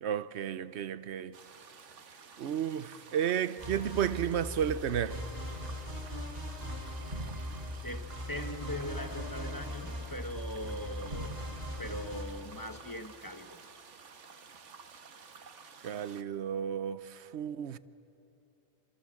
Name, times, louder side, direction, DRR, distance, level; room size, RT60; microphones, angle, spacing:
voice 1, 0.0-1.4 2.4-5.2 15.8-17.8, right 9 dB, 70° right, 1.0 m, -32 dB
sound 1, 1.3-16.2, right 5 dB, 85° right, 1.5 m, -53 dB
sound 2, 3.6-12.2, equal, 35° right, 4.3 m, -40 dB
voice 2, 7.8-11.4 11.8-13.6, left 1 dB, 20° left, 1.0 m, -41 dB
28.0 x 27.0 x 7.6 m
omnidirectional pair, 1.2 m